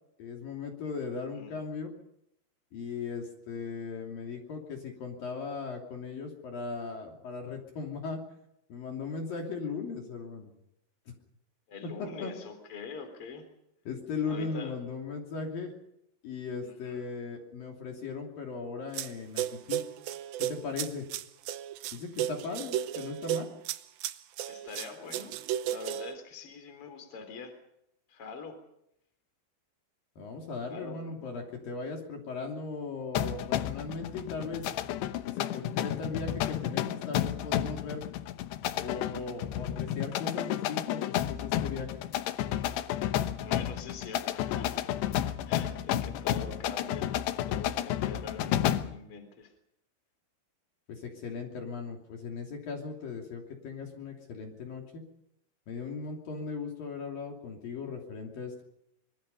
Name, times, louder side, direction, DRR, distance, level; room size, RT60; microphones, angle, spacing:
voice 1, 0.2-1.9 2.7-8.2 8.7-10.5 12.0-12.3 13.9-15.7 16.2-19.8 20.4-21.1 21.9-23.5 30.2-34.6 35.3-38.0 38.8-41.9 50.9-55.0 55.7-58.6, left 4 dB, 55° left, 1 dB, 4.5 m, -38 dB
voice 2, 1.3-1.6 11.7-13.4 14.2-14.8 16.6-17.0 24.5-25.4 25.6-27.6 28.1-28.6 30.7-31.4 43.4-44.9 45.2-47.1 47.5-49.5, left 4 dB, 35° left, 7 dB, 4.2 m, -44 dB
sound 1, 18.9-19.1 19.4-26.2, right 12 dB, 75° right, 2.3 m, -34 dB
sound 2, 33.2-49.0, left 12 dB, 75° left, 3.1 m, -31 dB
25.0 x 24.0 x 5.5 m, 0.80 s
omnidirectional pair, 5.0 m